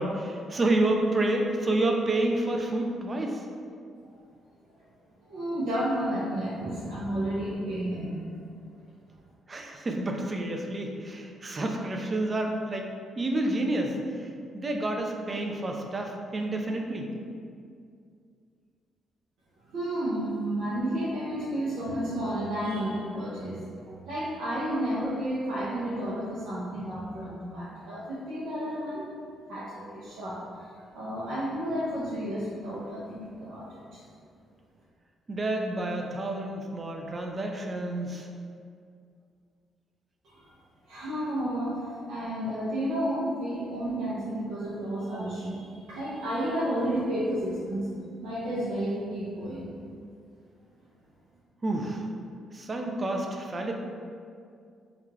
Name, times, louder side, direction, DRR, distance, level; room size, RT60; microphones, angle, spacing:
voice 1, 0.0-3.4 9.5-12.9 13.2-14.3 14.5-17.1 35.3-38.3 51.6-52.1 52.5-53.7, right 1 dB, 30° right, 2 dB, 0.3 m, -29 dB
voice 2, 5.2-8.2 19.7-29.1 29.5-34.0 40.2-40.5 40.9-47.9 48.2-49.8, equal, 80° right, -10 dB, 0.6 m, -32 dB
2.4 x 2.2 x 3.1 m, 2.3 s
cardioid pair, 90°, 0 cm